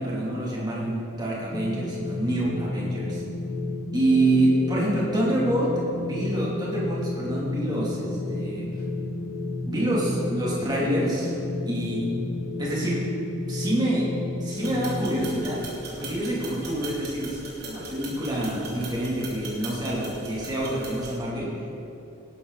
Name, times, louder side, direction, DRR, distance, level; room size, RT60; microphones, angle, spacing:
voice 1, 0.0-3.2 3.9-8.7 9.6-11.3 11.6-12.0 12.6-13.0 13.5-14.1 14.4-15.6 16.0-21.5, right 1 dB, 20° right, -6 dB, 3.0 m, -26 dB
sound 1, 1.5-15.4, left 2 dB, 20° left, 1.1 m, -32 dB
sound 2, 14.5-21.2, right 2 dB, 45° right, 3.2 m, -39 dB
18.0 x 11.5 x 4.2 m, 3.0 s
head